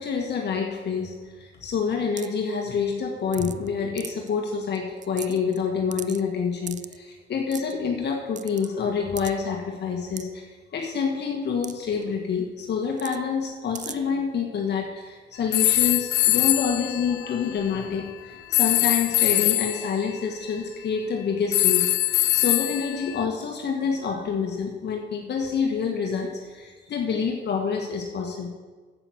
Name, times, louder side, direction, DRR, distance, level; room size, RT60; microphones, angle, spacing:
voice 1, 0.0-28.5, left 6 dB, 60° left, 1 dB, 1.6 m, -27 dB
sound 1, 2.2-2.4 3.3-3.7 4.0-4.3 4.7-4.8 5.0-5.6 5.9-6.2 6.7-7.0 7.5-7.7 8.4-8.7 9.2-9.3 10.2-10.3 11.6-11.7 12.0-12.1 13.0-13.2 13.7-13.9, right 8 dB, 40° right, 0.5 m, -37 dB
sound 2, 15.5-17.8 18.5-19.9 21.5-23.2, left 16 dB, 90° left, 0.4 m, -22 dB
8.9 x 8.0 x 7.8 m, 1.4 s
cardioid pair, 90°, 20 cm